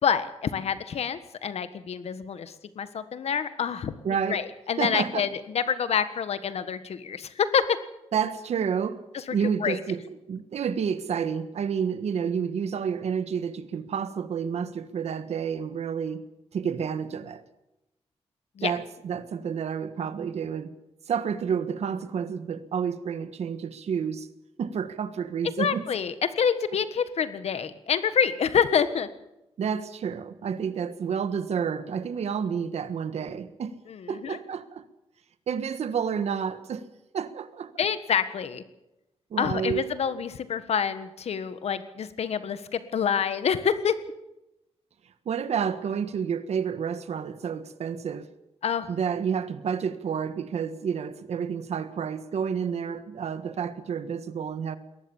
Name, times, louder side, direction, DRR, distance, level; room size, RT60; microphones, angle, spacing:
voice 1, 0.0-3.9 4.3-7.8 9.1-9.2 9.6-9.8 18.6-18.7 25.6-29.1 33.9-34.4 37.8-38.6 39.4-43.9 48.6-48.9, left 7 dB, 75° left, 1.5 m, -27 dB
voice 2, 4.0-4.4 4.8-5.3 8.1-9.0 9.3-10.0 10.3-16.2 16.5-17.4 18.6-20.7 21.1-24.3 24.6-25.9 29.6-33.8 34.1-34.9 35.5-36.9 37.1-37.7 39.3-39.9 45.2-48.3 48.9-54.8, right 7 dB, 85° right, 1.5 m, -30 dB
22.0 x 18.5 x 7.2 m
wide cardioid pair, 160°, 11 cm